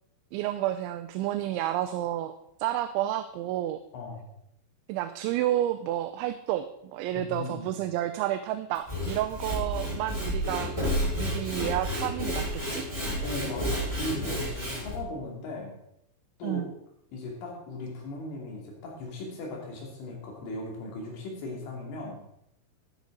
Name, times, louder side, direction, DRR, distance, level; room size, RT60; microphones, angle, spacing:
voice 1, 0.3-2.3 2.6-3.8 4.9-6.7 6.9-10.7 11.2-12.4 12.7-12.8 16.4-16.7, right 13 dB, 85° right, 9 dB, 2.8 m, -30 dB
voice 2, 3.9-4.2 7.1-7.8 13.2-15.7 16.4-16.7 17.1-22.2, left 2 dB, 85° left, -1 dB, 5.2 m, -37 dB
Sawing / Wood, 8.7-15.0, equal, 5° right, 4.5 m, -31 dB
13.5 x 9.5 x 4.0 m, 0.80 s
omnidirectional pair, 5.4 m